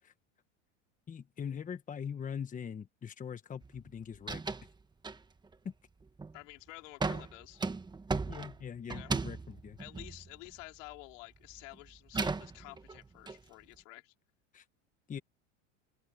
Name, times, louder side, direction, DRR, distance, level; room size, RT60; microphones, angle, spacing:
voice 1, 1.1-4.4 5.6-5.7 8.2-9.8 14.5-14.6 15.1-15.2, left 7 dB, 20° left, 1.2 m, -41 dB
sound 1, 3.6-3.9 4.1-4.7 5.0-5.5 6.0-6.4 7.0-11.0 11.4-13.4, right 4 dB, 10° right, 1.3 m, -37 dB
voice 2, 6.3-7.6 8.9-9.1 9.8-14.1, left 24 dB, 75° left, 3.3 m, -50 dB
open air
supercardioid pair, 125°, 38 cm